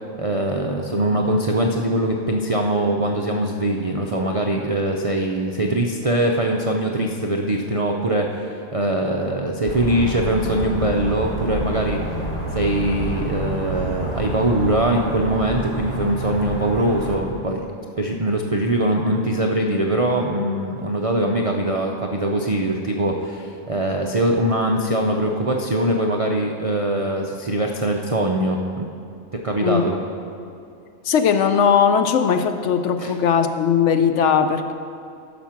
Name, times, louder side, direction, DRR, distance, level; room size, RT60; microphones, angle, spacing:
voice 1, 0.2-12.2 12.5-17.7 18.0-28.9 29.3-30.0 33.0-33.1, right 1 dB, 50° right, 1 dB, 0.4 m, -22 dB
sound 1, 9.7-17.2, right 1 dB, 10° left, 3.1 m, -28 dB
voice 2, 31.0-34.7, left 7 dB, 70° left, 8 dB, 0.8 m, -18 dB
14.0 x 6.0 x 5.8 m, 2.5 s
omnidirectional pair, 1.4 m